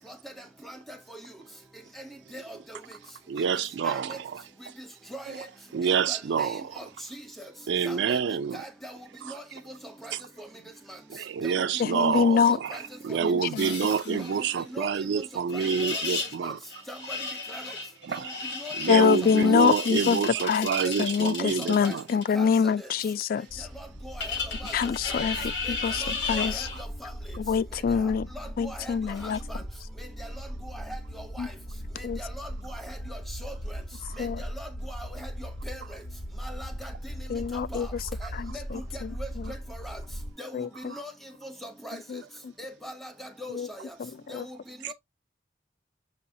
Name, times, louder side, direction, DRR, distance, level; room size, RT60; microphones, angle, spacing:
voice 1, 0.6-1.0 2.3-2.4 3.8-4.2 5.1-5.5 6.1-6.8 7.4-7.5 7.8-8.2 8.5-8.9 9.3-9.4 10.0-10.1 11.9-12.1 12.5-12.8 13.1-13.2 14.7-14.9 16.4-16.5 16.9-17.2 17.5-17.6 18.6-18.7 19.0-19.1 19.4-19.5 20.8-20.9 21.4-22.0 22.3-22.5 23.8-24.3 24.6-24.7 25.6-25.7 26.0-26.7 27.0-27.1 28.4-28.9 29.2-29.6 30.2-30.3 30.7-31.0 31.3-31.5 32.2-33.5 34.2-34.3 34.6-35.8 36.4-36.9 37.7-37.9 38.5-38.6 39.2-39.3 39.8-40.0 40.4-40.5 40.9-41.1 41.4-42.0 42.6-43.8 44.9-45.0, equal, ahead, 0.8 m, -40 dB
voice 2, 3.3-4.7 5.3-5.5 5.7-6.7 7.7-8.7 9.2-9.6 10.1-10.2 11.1-16.6 18.0-18.4 18.7-22.1 26.2-26.8 34.0-34.2 35.8-35.9 38.2-38.6 39.4-39.5 40.9-41.1 44.8-44.9, right 6 dB, 70° right, 0.4 m, -29 dB
voice 3, 11.8-12.6 13.2-13.7 14.1-14.2 18.9-20.7 21.0-23.7 24.7-26.7 27.4-28.3 28.6-29.4 31.4-31.5 32.0-32.2 34.2-34.4 37.3-37.9 38.3-39.1 40.5-40.9 42.1-42.2 43.5-43.7 44.0-44.5, left 6 dB, 50° left, 0.3 m, -25 dB
sound 1, 13.6-14.6 15.5-16.4 16.7-22.2 24.2-26.8 29.2-29.4, left 4 dB, 70° left, 1.1 m, -34 dB
sound 2, 23.5-40.3, equal, 35° left, 0.9 m, -39 dB
6.3 x 2.7 x 2.6 m
head